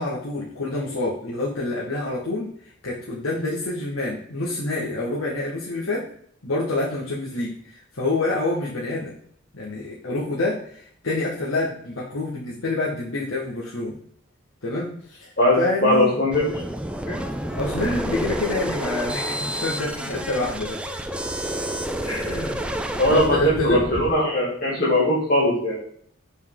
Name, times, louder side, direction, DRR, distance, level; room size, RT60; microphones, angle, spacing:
voice 1, 0.0-2.5 2.8-6.0 6.4-9.1 9.5-14.0 14.6-16.2 17.5-21.0 22.0-22.6 23.1-23.8, left 2 dB, 90° left, -6 dB, 1.4 m, -27 dB
voice 2, 15.4-16.6 17.1-17.2 17.8-17.9 22.1-22.2 23.0-25.8, left 1 dB, 45° left, -8 dB, 2.1 m, -20 dB
sound 1, 16.3-24.1, right 1 dB, 5° right, 0.3 m, -29 dB
6.9 x 4.4 x 3.7 m, 0.63 s
head